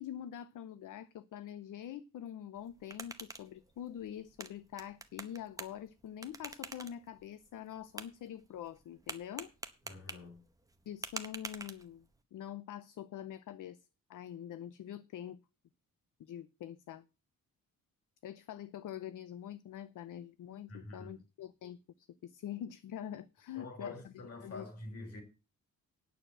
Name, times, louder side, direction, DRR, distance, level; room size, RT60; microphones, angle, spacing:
voice 1, 0.0-9.5 10.9-12.1 12.3-13.8 14.1-15.4 16.2-17.0 18.2-24.1 24.4-24.6, left 10 dB, 65° left, 0.7 m, -45 dB
sound 1, 2.6-12.2, right 2 dB, 10° right, 0.9 m, -48 dB
voice 2, 9.8-10.4 20.7-21.1 23.6-25.2, left 2 dB, 45° left, 3.7 m, -47 dB
9.2 x 6.7 x 7.6 m
wide cardioid pair, 160°, 34 cm